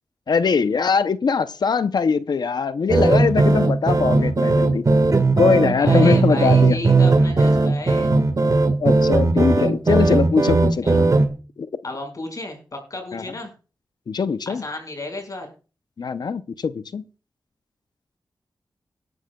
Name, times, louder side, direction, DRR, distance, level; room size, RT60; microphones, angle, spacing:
voice 1, 0.3-4.9 5.4-6.8 8.8-11.0 11.6-11.7 13.1-13.2 14.1-14.6 16.0-17.0, left 5 dB, 70° left, 0.6 m, -21 dB
sound 1, 2.9-11.3, right 3 dB, 50° right, 1.6 m, -18 dB
voice 2, 5.8-8.2 10.8-11.0 11.8-13.5 14.4-15.5, left 2 dB, 50° left, 5.1 m, -33 dB
18.5 x 11.0 x 2.3 m
cardioid pair, 45°, 7 cm